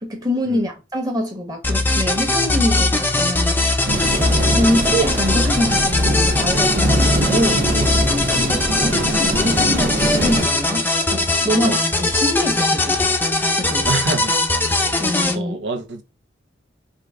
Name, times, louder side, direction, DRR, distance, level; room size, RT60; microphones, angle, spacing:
voice 1, 0.0-3.7 4.5-7.6 8.1-13.0 13.6-13.9 15.0-15.6, equal, 20° right, 1.4 m, -24 dB
sound 1, 1.6-15.3, left 2 dB, 10° left, 0.6 m, -20 dB
sound 2, 3.9-10.4, right 2 dB, 45° right, 1.1 m, -23 dB
voice 2, 13.9-14.3 14.8-14.9 15.3-16.0, right 3 dB, 75° right, 0.9 m, -27 dB
5.1 x 2.5 x 3.7 m
head